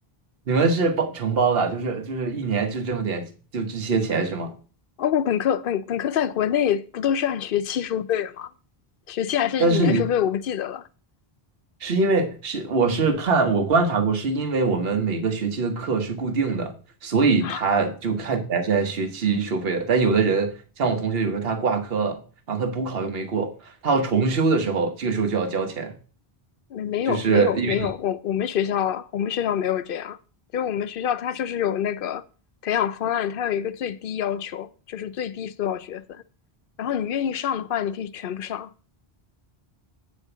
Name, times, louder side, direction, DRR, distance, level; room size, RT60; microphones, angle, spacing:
voice 1, 0.5-4.5 9.6-10.0 11.8-16.7 17.0-22.2 22.5-26.0 27.1-27.9, right 4 dB, 70° right, 1.3 m, -23 dB
voice 2, 5.0-8.5 9.1-10.9 17.4-17.6 26.7-30.2 30.5-32.2 32.6-36.2 36.8-38.7, left 9 dB, 65° left, 0.7 m, -26 dB
8.5 x 4.6 x 6.8 m
omnidirectional pair, 1.0 m